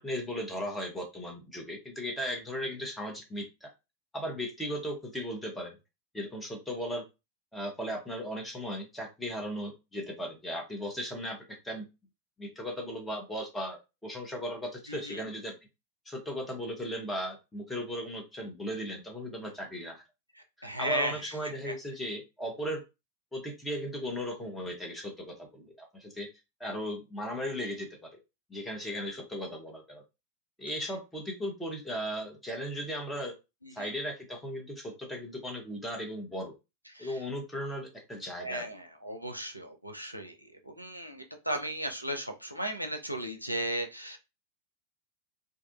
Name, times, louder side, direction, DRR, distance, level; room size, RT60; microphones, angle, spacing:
voice 1, 0.0-3.7 4.1-5.8 6.1-7.0 7.5-11.9 12.4-15.5 16.1-20.0 20.6-22.8 23.3-26.3 26.6-28.1 28.5-30.0 30.6-33.4 33.7-36.5 37.0-38.7, equal, 10° left, 0.8 m, -37 dB
voice 2, 14.9-15.3 20.6-21.7 33.6-33.9 36.9-37.2 38.4-44.2, right 1 dB, 90° right, 0.4 m, -36 dB
2.6 x 2.3 x 2.5 m
figure-of-eight pair, 90°, 0 cm